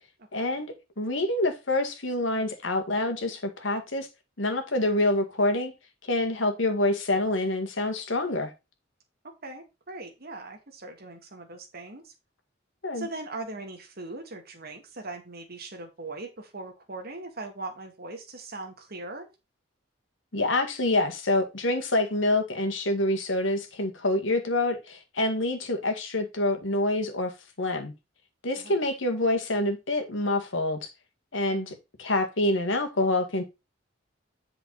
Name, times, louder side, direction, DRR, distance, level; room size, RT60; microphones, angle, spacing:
voice 1, 0.3-4.1 4.4-5.7 6.0-8.5 12.8-13.1 20.3-27.3 27.6-27.9 28.4-30.9 31.3-33.4, left 2 dB, 85° left, 1.9 m, -26 dB
voice 2, 9.4-12.1 12.9-19.3 28.5-28.8 31.5-31.8, right 2 dB, 55° right, 2.3 m, -40 dB
8.1 x 5.8 x 4.1 m
head